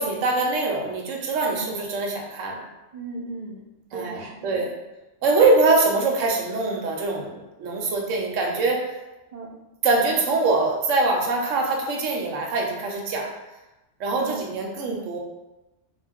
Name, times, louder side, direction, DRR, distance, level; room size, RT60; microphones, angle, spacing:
voice 1, 0.0-2.6 3.9-4.7 5.2-8.9 9.8-13.3 14.0-15.2, right 3 dB, 85° right, 0 dB, 0.9 m, -23 dB
voice 2, 2.9-4.6 9.3-9.6 14.2-14.5, right 3 dB, 55° right, -2 dB, 0.4 m, -37 dB
2.4 x 2.0 x 3.4 m, 1.0 s
omnidirectional pair, 1.3 m